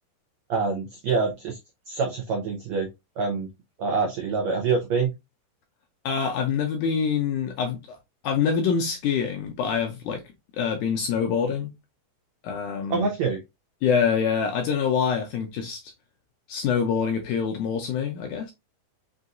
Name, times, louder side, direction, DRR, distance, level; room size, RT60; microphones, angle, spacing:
voice 1, 0.5-1.6 1.9-2.9 3.2-3.5 3.8-5.1 12.9-13.4, right 4 dB, 85° right, 1.5 m, -25 dB
voice 2, 6.0-8.0 8.2-10.2 10.6-11.7 12.4-13.1 13.8-15.8 16.5-18.5, left 6 dB, 80° left, 1.8 m, -25 dB
5.7 x 2.7 x 2.5 m
omnidirectional pair, 4.1 m